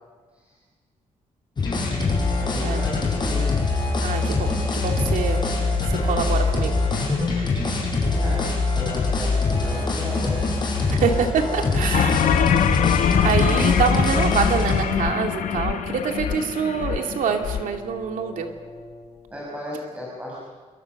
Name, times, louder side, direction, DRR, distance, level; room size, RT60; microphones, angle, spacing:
Brass instrument, 1.6-19.4, left 2 dB, 55° left, 6.3 m, -42 dB
sound 1, 1.6-14.8, left 3 dB, 35° left, 6.3 m, -23 dB
voice 1, 2.4-3.5 8.1-11.0 19.3-20.4, left 1 dB, 10° right, -4 dB, 5.9 m, -35 dB
voice 2, 4.0-5.4 5.9-6.8 10.9-12.2 13.2-18.5, right 6 dB, 85° right, 4 dB, 2.6 m, -25 dB
sound 2, 11.9-17.6, left 8 dB, 80° left, 1.4 m, -23 dB
28.0 x 23.5 x 6.6 m, 1.5 s
wide cardioid pair, 160°, 13 cm